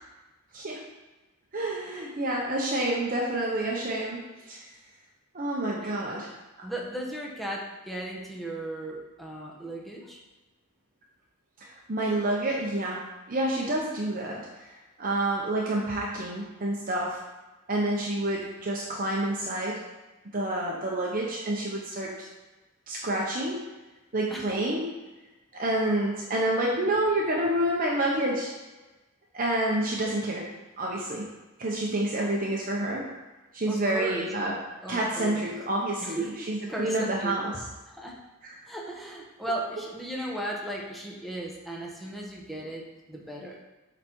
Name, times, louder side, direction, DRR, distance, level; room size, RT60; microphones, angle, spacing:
voice 1, 1.5-4.7 5.3-6.3 11.6-13.0 13.3-14.7 15.0-17.2 17.7-19.8 20.3-22.3 22.9-23.6 24.1-24.9 25.5-28.5 29.3-30.4 30.8-31.3 31.6-33.0 33.5-34.5 34.9-37.6 38.4-38.5, right 1 dB, 40° right, -3 dB, 0.8 m, -28 dB
voice 2, 6.6-10.2 24.3-24.6 33.7-34.3 34.8-35.5 36.0-37.4 38.0-38.1 38.7-43.6, right 1 dB, ahead, -2 dB, 1.0 m, -36 dB
8.1 x 4.0 x 4.5 m, 1.1 s
head